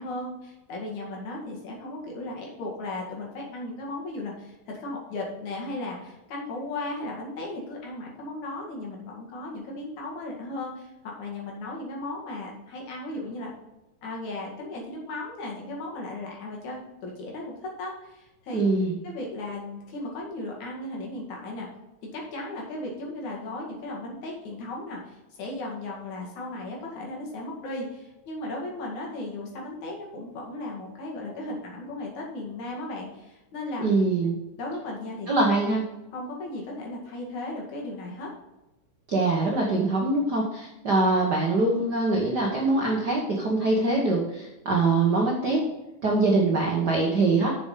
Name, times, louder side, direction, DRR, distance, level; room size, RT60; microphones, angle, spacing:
voice 1, 0.0-13.5 14.0-18.6 19.0-21.7 22.0-33.9 34.6-35.3 36.1-38.3, left 2 dB, 65° left, -2 dB, 3.3 m, -36 dB
voice 2, 18.5-18.9 33.8-34.3 35.3-35.8 39.1-45.6 46.0-47.5, right 2 dB, 55° right, -2 dB, 1.1 m, -23 dB
7.1 x 7.0 x 5.7 m, 0.98 s
omnidirectional pair, 3.7 m